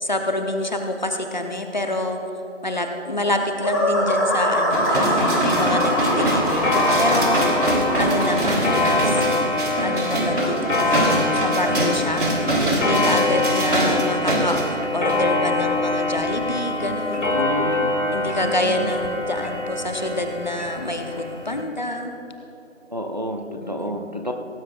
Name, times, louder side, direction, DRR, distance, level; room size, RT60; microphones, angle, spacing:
voice 1, 0.0-2.2 2.6-7.6 8.0-9.2 9.8-11.1 11.3-12.3 12.7-17.4 18.1-22.1 23.6-24.1, left 1 dB, 35° left, 4 dB, 0.9 m, -27 dB
sound 1, 3.6-8.3, equal, 15° left, 1.9 m, -23 dB
sound 2, 4.7-14.6 15.1-15.2, right 1 dB, 65° right, 3.2 m, -24 dB
Clock, 5.5-21.6, left 2 dB, 65° left, 2.0 m, -24 dB
voice 2, 17.3-18.0 18.4-18.9 22.9-24.3, equal, 35° right, 4 dB, 0.6 m, -29 dB
18.0 x 16.0 x 2.4 m, 3.0 s
figure-of-eight pair, 165°, 39 cm